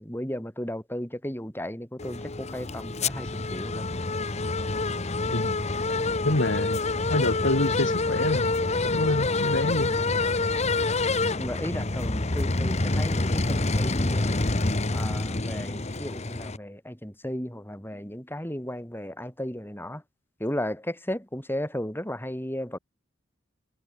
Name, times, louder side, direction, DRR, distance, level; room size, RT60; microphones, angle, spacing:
voice 1, 0.0-3.9 11.4-14.4 14.9-20.0 20.4-22.8, equal, 10° left, 6.2 m, -35 dB
sound 1, 2.0-16.6, left 3 dB, 35° left, 1.2 m, -27 dB
voice 2, 6.2-8.5 8.8-9.9, left 1 dB, 65° left, 2.6 m, -27 dB
head